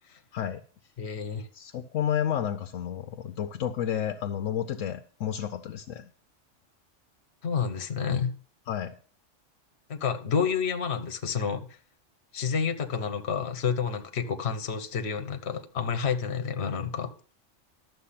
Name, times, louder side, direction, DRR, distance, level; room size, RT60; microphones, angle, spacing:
voice 1, 1.0-1.5 7.4-8.3 9.9-11.7 12.3-17.1, left 6 dB, 60° left, 1.3 m, -29 dB
voice 2, 1.5-6.1 8.7-8.9, left 9 dB, 85° left, 1.1 m, -31 dB
11.5 x 7.5 x 5.7 m
omnidirectional pair, 1.3 m